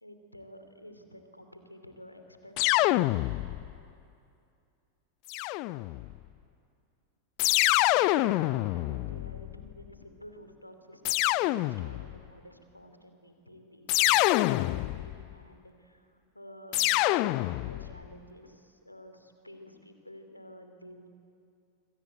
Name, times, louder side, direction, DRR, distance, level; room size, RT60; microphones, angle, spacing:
voice 1, 0.0-3.2 7.8-21.1, equal, 85° left, 7 dB, 2.9 m, -51 dB
sound 1, 2.6-3.8 5.3-6.1 7.4-9.7 11.0-12.2 13.9-15.2 16.7-17.9, left 19 dB, 45° left, 0.6 m, -26 dB
26.5 x 24.5 x 9.1 m, 2.5 s
figure-of-eight pair, 90°, 0 cm